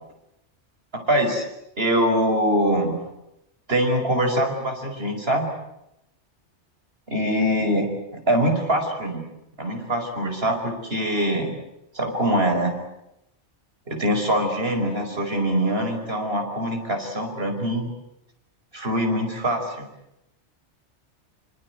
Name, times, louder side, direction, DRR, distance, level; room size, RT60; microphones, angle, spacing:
voice 1, 0.9-1.4 1.8-3.0 3.7-5.5 7.1-7.8 8.3-9.2 9.6-11.5 11.9-12.8 13.9-17.9 18.7-19.9, equal, 55° right, 4 dB, 5.5 m, -23 dB
26.0 x 26.0 x 8.1 m, 0.84 s
omnidirectional pair, 1.2 m